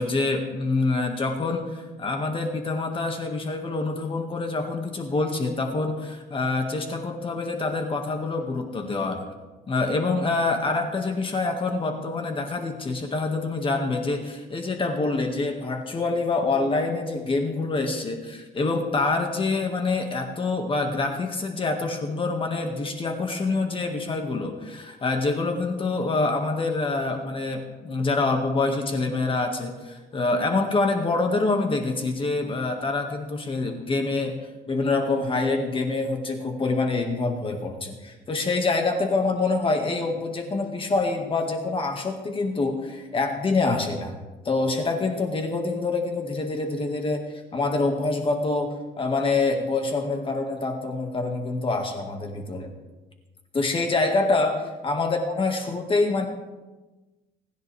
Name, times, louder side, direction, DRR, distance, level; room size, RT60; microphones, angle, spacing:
voice 1, 0.0-9.2 9.7-34.4 34.7-44.1 44.4-47.2 47.5-52.7 53.5-56.3, left 3 dB, 30° left, 4 dB, 1.9 m, -26 dB
27.0 x 10.5 x 3.5 m, 1.2 s
cardioid pair, 110°, 17 cm